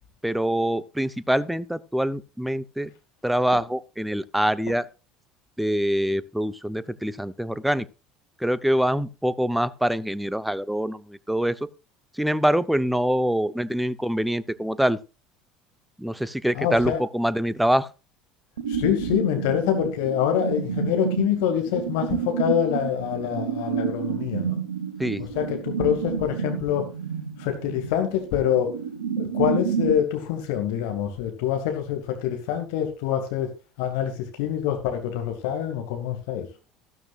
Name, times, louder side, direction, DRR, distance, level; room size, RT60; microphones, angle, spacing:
voice 1, 0.2-2.9 3.2-4.9 5.6-7.9 8.4-11.7 12.1-15.0 16.0-17.9 25.0-25.2, equal, 5° right, 0.8 m, -24 dB
voice 2, 16.6-17.0 18.7-24.6 25.4-26.9 27.4-28.7 29.2-33.5 33.8-34.1 34.4-36.5, left 10 dB, 65° left, 2.2 m, -25 dB
sound 1, 18.6-30.0, right 7 dB, 75° right, 1.5 m, -29 dB
13.5 x 13.0 x 2.5 m
figure-of-eight pair, 65°, 0 cm